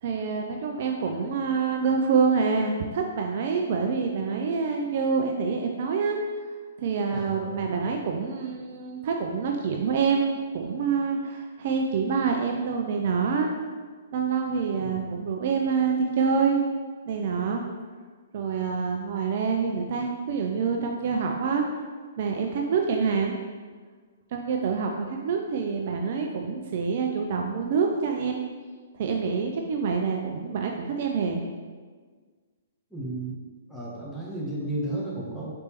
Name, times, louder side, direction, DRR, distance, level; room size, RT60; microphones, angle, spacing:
voice 1, 0.0-6.2 6.8-13.5 14.1-16.6 17.1-17.6 18.3-21.6 22.2-23.4 24.3-28.4 28.9-31.4, right 5 dB, 45° right, 2 dB, 0.3 m, -26 dB
voice 2, 7.1-7.9 14.8-15.1 32.9-33.3 33.7-35.5, right 1 dB, ahead, -6 dB, 0.9 m, -34 dB
4.2 x 3.3 x 2.9 m, 1.5 s
figure-of-eight pair, 120°, 0 cm